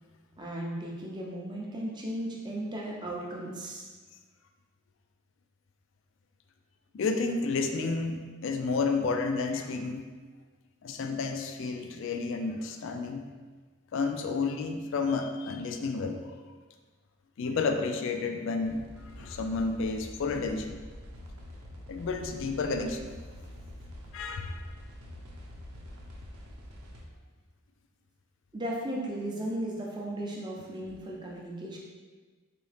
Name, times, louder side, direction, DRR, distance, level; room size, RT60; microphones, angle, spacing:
voice 1, 0.4-3.8 28.5-31.8, right 1 dB, 20° right, -3 dB, 0.5 m, -36 dB
voice 2, 6.9-10.1 10.8-13.2 13.9-16.2 17.4-20.8 21.9-23.1 24.1-24.6, left 4 dB, 55° left, 5 dB, 0.3 m, -31 dB
sound 1, 18.6-27.0, left 1 dB, 90° right, 0.7 m, -46 dB
4.0 x 2.8 x 3.3 m, 1.4 s
head